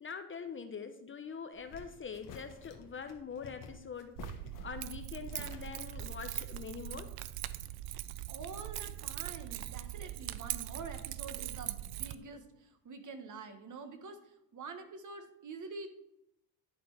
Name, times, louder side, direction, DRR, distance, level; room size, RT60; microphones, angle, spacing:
voice 1, 0.0-4.2 4.6-7.1, left 6 dB, 30° left, 8 dB, 0.6 m, -44 dB
sound 1, 1.5-6.2, left 3 dB, 80° left, 1.5 m, -55 dB
sound 2, 2.1-2.9 3.9-5.0 5.3-6.0, left 6 dB, 50° left, 1.0 m, -52 dB
Keys jangling, 4.2-12.1, right 14 dB, 60° right, 0.5 m, -41 dB
voice 2, 8.3-15.9, right 4 dB, 45° right, 7 dB, 1.3 m, -47 dB
11.0 x 4.5 x 4.7 m, 0.81 s
cardioid pair, 95°, 42 cm